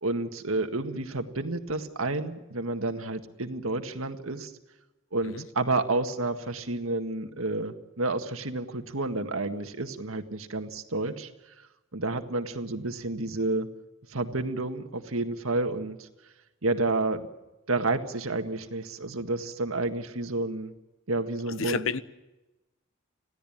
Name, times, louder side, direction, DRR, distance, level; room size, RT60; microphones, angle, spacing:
voice 1, 0.0-4.5 5.1-13.7 14.1-16.1 16.6-17.2 17.7-20.7 21.1-21.8, right 2 dB, 85° right, 1.9 m, -30 dB
voice 2, 21.5-22.0, left 5 dB, 75° left, 1.0 m, -31 dB
26.5 x 16.0 x 8.8 m
head